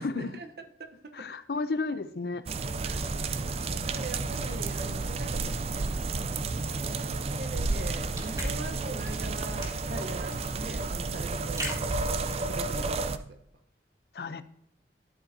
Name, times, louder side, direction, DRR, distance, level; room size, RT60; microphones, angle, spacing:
voice 1, 0.0-1.3 2.8-6.0 7.3-11.8 12.4-13.4, right 2 dB, 60° right, 0.9 m, -42 dB
voice 2, 1.2-2.4 14.1-14.4, left 3 dB, 60° left, 0.5 m, -32 dB
sound 1, 2.5-13.2, right 3 dB, 35° right, 0.4 m, -31 dB
sound 2, 7.5-12.7, right 1 dB, 20° right, 2.0 m, -39 dB
12.0 x 5.2 x 2.7 m
head